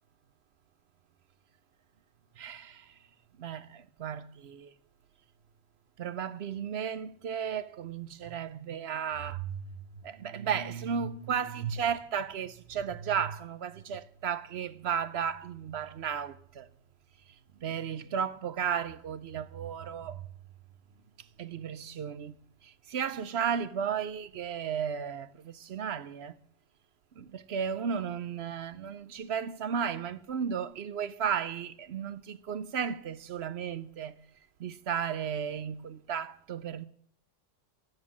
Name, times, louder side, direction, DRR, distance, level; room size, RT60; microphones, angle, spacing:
voice 1, 2.4-2.9 3.4-4.7 6.0-9.7 10.0-16.7 17.6-20.2 21.4-22.4 22.6-26.4 27.2-34.2 34.6-36.8, right 7 dB, 60° right, 0.9 m, -34 dB
13.0 x 9.4 x 7.2 m
omnidirectional pair, 1.3 m